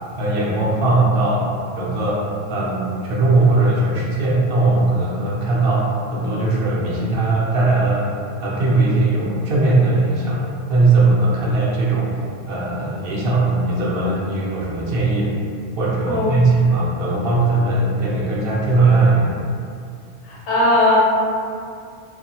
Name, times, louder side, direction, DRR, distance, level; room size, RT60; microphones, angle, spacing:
voice 1, 0.2-1.5 1.8-8.1 8.4-10.4 10.7-12.1 12.5-15.3 15.8-19.4, right 2 dB, 65° right, -6 dB, 0.7 m, -19 dB
voice 2, 20.2-21.0, left 1 dB, 80° left, -6 dB, 0.9 m, -17 dB
2.4 x 2.1 x 2.7 m, 2.3 s
omnidirectional pair, 1.1 m